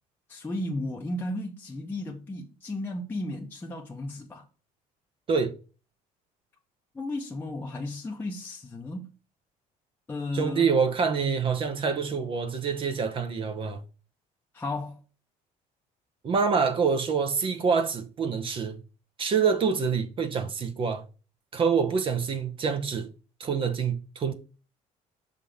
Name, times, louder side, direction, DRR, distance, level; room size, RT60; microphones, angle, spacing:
voice 1, 0.3-4.4 6.9-9.1 10.1-10.7 14.5-15.0, left 2 dB, 15° left, 0.8 m, -34 dB
voice 2, 10.3-13.8 16.2-18.8 19.2-21.0 21.5-23.1 23.4-24.3, right 5 dB, 35° right, 0.9 m, -26 dB
5.6 x 3.8 x 4.9 m
cardioid pair, 135°, 15 cm